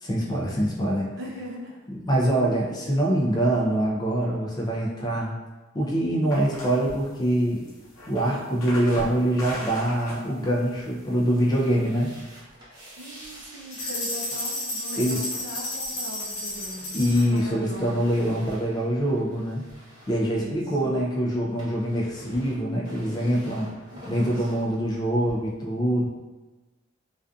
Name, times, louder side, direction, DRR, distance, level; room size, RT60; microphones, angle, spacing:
voice 1, 0.0-1.1 2.1-5.3 5.7-7.6 8.1-12.1 15.0-15.2 16.9-19.6 20.1-23.7 24.1-26.1, right 1 dB, 20° left, -3 dB, 0.3 m, -24 dB
voice 2, 1.2-1.7 13.0-16.9 17.3-18.1 20.3-20.9 23.9-24.7, equal, 60° right, -2 dB, 0.5 m, -40 dB
sound 1, 6.3-12.2, left 1 dB, 80° left, 0.6 m, -40 dB
sound 2, 11.2-21.0 21.3-25.3, equal, 20° right, 0.8 m, -47 dB
sound 3, 13.7-17.4, left 1 dB, 60° left, 0.9 m, -32 dB
2.4 x 2.4 x 2.3 m, 1.2 s
head